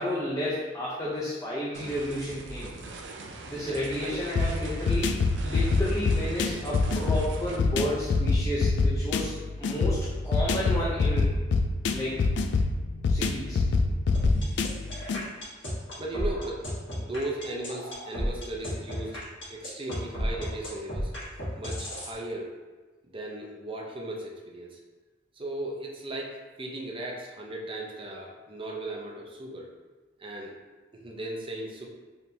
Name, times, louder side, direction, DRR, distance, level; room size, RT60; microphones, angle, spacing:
voice 1, 0.0-2.7 3.5-5.1 5.4-11.3 11.9-12.2 13.1-13.6 14.3-14.5, left 1 dB, 15° left, -6 dB, 0.6 m, -32 dB
sound 1, 1.7-7.6, right 3 dB, 75° right, 0.5 m, -42 dB
voice 2, 3.5-4.3 5.9-6.0 16.0-16.6 17.0-19.2 19.5-21.1 21.6-22.5 23.1-24.8 25.4-29.7 30.2-30.5 30.9-31.9, right 1 dB, 30° right, -1 dB, 0.6 m, -37 dB
sound 2, 4.4-15.2, left 3 dB, 65° left, 0.3 m, -26 dB
sound 3, 14.1-22.1, equal, 90° left, 1.3 m, -33 dB
4.2 x 3.3 x 2.7 m, 1.3 s
head